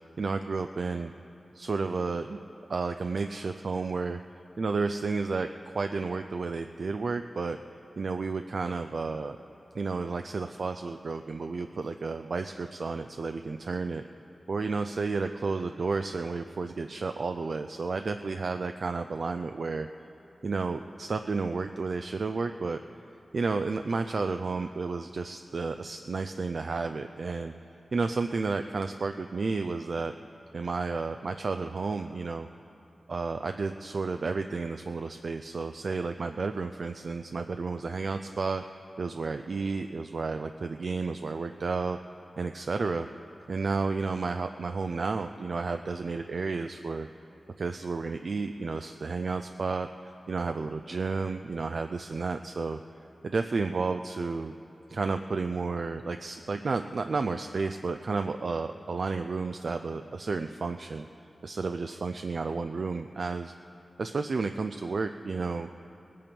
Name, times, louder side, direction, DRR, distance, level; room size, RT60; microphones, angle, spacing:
voice 1, 0.2-1.1 1.5-2.4 2.7-4.2 4.6-7.6 8.0-9.4 9.7-14.0 14.5-19.9 20.4-22.8 23.3-27.5 27.9-30.1 30.5-32.5 33.1-38.6 39.0-42.0 42.4-43.1 43.5-47.1 47.6-49.9 50.3-52.8 53.2-54.5 54.9-61.1 61.4-63.5 64.0-65.7, right 4 dB, 65° right, 7 dB, 0.4 m, -31 dB
18.5 x 8.5 x 5.3 m, 3.0 s
wide cardioid pair, 70°, 0 cm